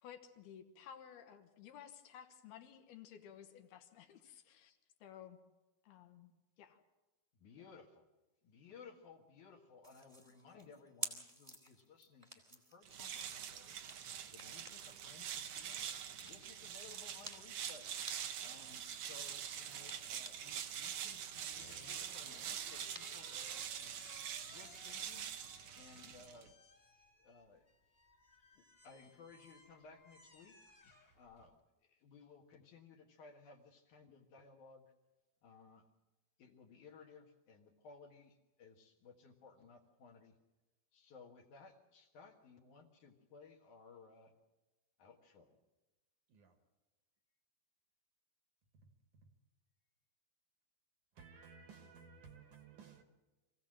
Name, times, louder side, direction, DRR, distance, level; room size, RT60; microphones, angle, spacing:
voice 1, 0.0-5.4 5.8-6.3 6.6-6.8, left 9 dB, 80° left, 3.1 m, -55 dB
voice 2, 7.4-8.1 8.4-13.8 14.3-15.8 16.2-18.0 18.4-23.4 23.7-23.9 24.5-25.3 25.7-27.6 28.5-34.8 35.4-35.9 36.4-40.4 40.9-44.4 45.0-45.6, left 5 dB, 60° left, 2.7 m, -60 dB
sound 1, 9.8-20.6 21.0-24.2, right 1 dB, 10° right, 1.4 m, -53 dB
sound 2, 12.8-26.5, right 9 dB, 90° right, 1.4 m, -45 dB
sound 3, 21.6-31.5, left 2 dB, 20° left, 1.9 m, -60 dB
voice 3, 51.2-53.0, right 5 dB, 60° right, 2.4 m, -57 dB
24.5 x 16.0 x 7.6 m
omnidirectional pair, 4.6 m